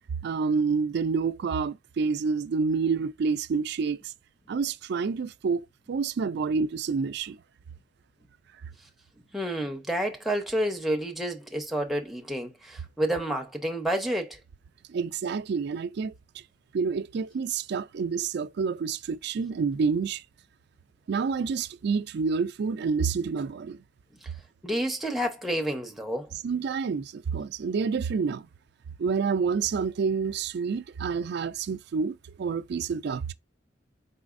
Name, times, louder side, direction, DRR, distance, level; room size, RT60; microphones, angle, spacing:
voice 1, 0.2-4.1 4.5-7.4 14.9-16.1 16.7-20.2 21.1-23.8 26.4-28.5 29.0-33.3, right 5 dB, 60° right, 0.3 m, -28 dB
voice 2, 9.3-14.4 24.2-24.3 24.6-26.3, right 1 dB, ahead, 0.7 m, -29 dB
4.2 x 4.0 x 2.5 m
head